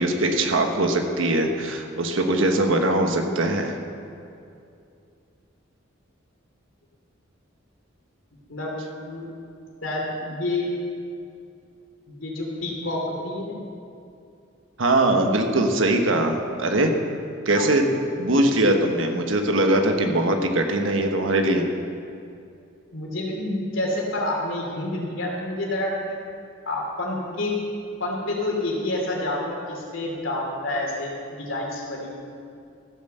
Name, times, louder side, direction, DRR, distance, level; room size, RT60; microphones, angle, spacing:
voice 1, 0.0-3.8 14.8-16.9 17.4-17.8 18.2-21.6, right 1 dB, 80° right, 4 dB, 1.3 m, -21 dB
voice 2, 8.5-9.3 9.8-10.7 12.1-13.6 17.6-17.7 22.9-26.2 26.6-27.5 28.0-32.1, left 1 dB, 75° left, -2 dB, 3.0 m, -28 dB
15.0 x 7.3 x 6.8 m, 2.5 s
head